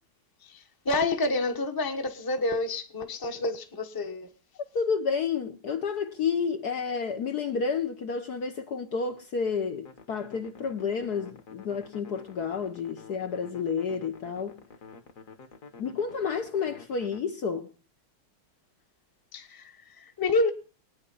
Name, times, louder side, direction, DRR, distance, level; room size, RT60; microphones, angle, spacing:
voice 1, 0.4-4.3 19.3-20.5, left 2 dB, 15° left, 0.9 m, -29 dB
voice 2, 4.7-14.6 15.8-17.7, left 6 dB, 60° left, 1.2 m, -30 dB
sound 1, 9.8-17.2, left 4 dB, 40° left, 1.6 m, -49 dB
21.0 x 9.6 x 5.5 m
omnidirectional pair, 2.4 m